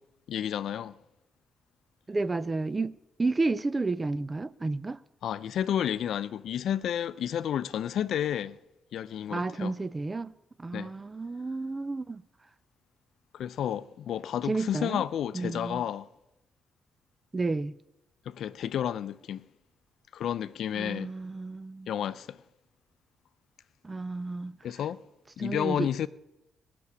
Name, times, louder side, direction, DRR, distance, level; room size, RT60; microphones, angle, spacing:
voice 1, 0.3-1.0 5.2-8.6 8.9-9.7 10.7-10.9 13.3-16.1 18.3-19.5 20.1-21.1 21.9-22.4 24.6-25.0 25.4-26.1, left 10 dB, 75° left, 0.5 m, -31 dB
voice 2, 2.1-5.0 9.3-10.3 10.6-12.2 14.5-15.0 15.3-15.8 17.3-17.7 20.7-21.9 23.8-24.6 25.4-25.9, right 3 dB, 20° right, 0.4 m, -31 dB
19.0 x 7.0 x 9.5 m
cardioid pair, 120°, 0 cm